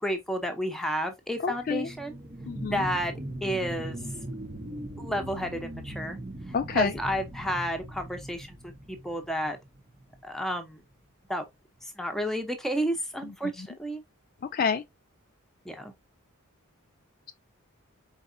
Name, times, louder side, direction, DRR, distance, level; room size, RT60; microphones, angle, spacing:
voice 1, 0.0-2.2 2.6-3.1 3.4-4.0 5.0-6.2 6.7-9.6 10.2-10.8 11.3-11.4 11.8-14.0 15.6-15.9, equal, ahead, 0.8 m, -31 dB
Power Down, 1.3-10.4 10.9-11.0, right 1 dB, 30° right, 0.8 m, -40 dB
voice 2, 1.4-1.9 2.5-2.8 6.5-6.9 14.5-14.8, left 6 dB, 40° left, 0.3 m, -27 dB
4.7 x 4.0 x 2.6 m
head